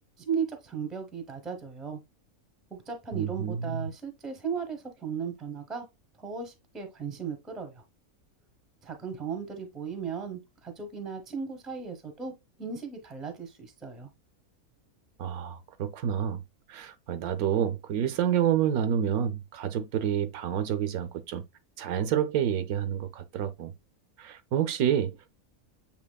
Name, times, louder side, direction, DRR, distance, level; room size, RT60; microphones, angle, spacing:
voice 1, 0.2-2.0 2.7-5.9 6.2-7.8 8.8-12.3 12.6-14.1, right 6 dB, ahead, 0.6 m, -36 dB
voice 2, 3.1-3.9 15.2-16.4 16.7-21.4 21.8-23.7 24.2-25.3, right 9 dB, 80° right, 1.1 m, -28 dB
7.2 x 2.9 x 2.2 m
omnidirectional pair, 1.5 m